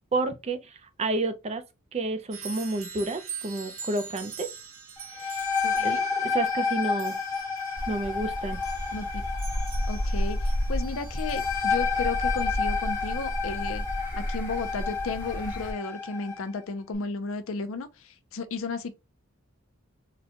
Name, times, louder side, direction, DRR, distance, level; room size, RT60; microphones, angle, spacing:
voice 1, 0.1-1.6 1.9-4.5 5.1-5.4 5.8-7.2 7.9-8.6, right 2 dB, 30° right, 0.4 m, -30 dB
sound 1, 2.3-11.7, right 6 dB, 65° right, 0.9 m, -44 dB
sound 2, 5.0-16.5, left 5 dB, 10° left, 0.7 m, -30 dB
voice 2, 5.6-6.0 8.9-9.2 9.9-13.8 14.2-18.9, left 4 dB, 65° left, 0.5 m, -34 dB
sound 3, 7.8-15.7, equal, 45° left, 1.2 m, -32 dB
3.9 x 2.2 x 2.8 m
head